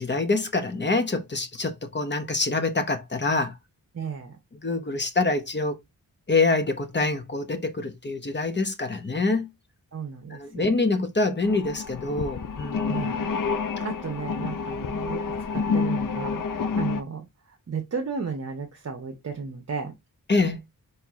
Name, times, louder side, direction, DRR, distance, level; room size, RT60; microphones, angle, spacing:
voice 1, 0.0-3.5 4.6-5.8 6.3-9.5 10.3-13.1 20.3-20.6, left 3 dB, 30° left, 0.8 m, -25 dB
voice 2, 3.9-4.4 9.9-10.7 12.9-13.3 13.8-15.2 15.5-17.3 17.7-19.9, right 5 dB, 45° right, 0.9 m, -34 dB
sound 1, 11.4-17.0, left 5 dB, 65° left, 0.7 m, -28 dB
4.6 x 3.1 x 3.5 m
wide cardioid pair, 95°, 36 cm